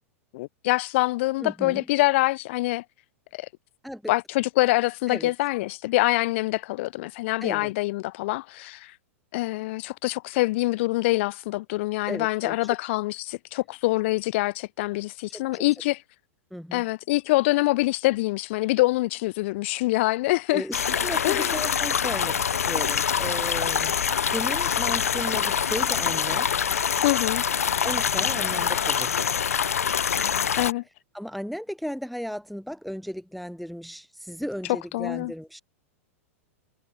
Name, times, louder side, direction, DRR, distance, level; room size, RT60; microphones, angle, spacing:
voice 1, 0.3-2.8 3.3-3.5 4.1-8.9 9.3-16.0 16.7-20.6 21.2-21.6 27.0-27.4 30.6-30.8 34.7-35.3, left 20 dB, 55° left, 1.1 m, -25 dB
voice 2, 1.4-1.8 3.8-4.1 5.1-5.3 7.4-7.7 12.1-12.7 15.3-15.6 16.5-16.8 20.5-26.5 27.8-29.3 31.1-35.6, equal, ahead, 0.9 m, -35 dB
sound 1, 20.7-30.7, left 7 dB, 85° left, 0.4 m, -25 dB
hypercardioid pair, 105°, 8 cm